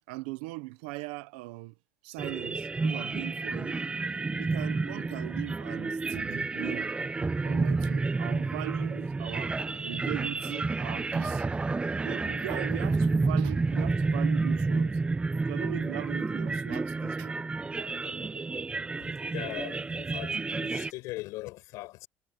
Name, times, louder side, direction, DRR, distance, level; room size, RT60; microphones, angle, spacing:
voice 1, 0.1-1.7 2.0-3.8 4.4-6.9 7.4-9.6 9.8-11.5 12.0-15.0 15.5-17.4, right 21 dB, 90° right, 1.1 m, -39 dB
sound 1, 2.2-20.9, right 3 dB, 20° right, 0.9 m, -30 dB
voice 2, 19.0-22.1, left 20 dB, 80° left, 6.0 m, -40 dB
supercardioid pair, 85°, 5 cm